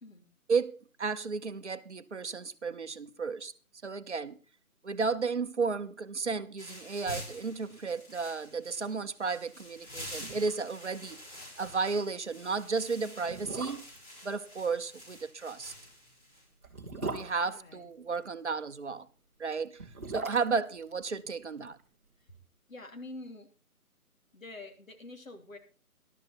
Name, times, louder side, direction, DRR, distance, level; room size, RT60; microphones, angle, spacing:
voice 1, 0.5-3.5 3.8-4.4 4.8-11.2 11.6-13.9 14.2-15.7 17.0-19.1 19.4-19.7 20.1-21.8, right 4 dB, 50° right, 0.8 m, -33 dB
sound 1, 6.6-16.4, left 1 dB, 30° left, 7.2 m, -48 dB
sound 2, 9.8-9.9 10.1-10.8 11.1-11.2 11.6-11.7 12.4-12.5 13.2-14.1 15.6-18.3 19.6-21.8 22.1-22.2, right 3 dB, 10° right, 1.0 m, -41 dB
voice 2, 17.4-17.9 22.7-23.5 24.3-25.6, left 2 dB, 60° left, 3.3 m, -46 dB
14.0 x 12.0 x 4.3 m
figure-of-eight pair, 170°, 44 cm